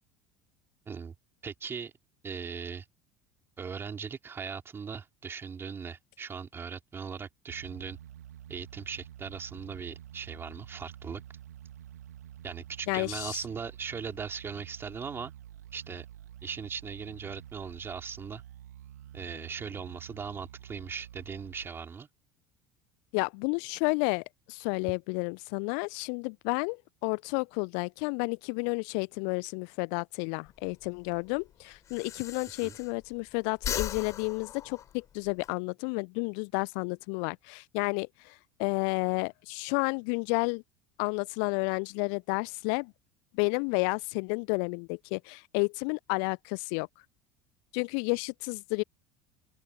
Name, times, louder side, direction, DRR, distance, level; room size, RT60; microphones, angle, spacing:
voice 1, 1.4-1.9 2.2-2.9 3.6-8.0 8.5-11.2 12.4-15.3 15.7-16.0 16.4-18.4 19.1-22.1 32.6-32.8, right 6 dB, 25° right, 4.9 m, -39 dB
sound 1, 7.5-21.7, right 11 dB, 70° right, 2.2 m, -49 dB
voice 2, 12.9-13.4 23.1-40.6 41.0-42.9 43.3-46.9 47.7-48.8, left 40 dB or more, 55° left, 0.6 m, -31 dB
Breathing, 30.5-33.2 33.5-35.5, left 9 dB, 35° left, 3.7 m, -38 dB
open air
figure-of-eight pair, 65°, 9 cm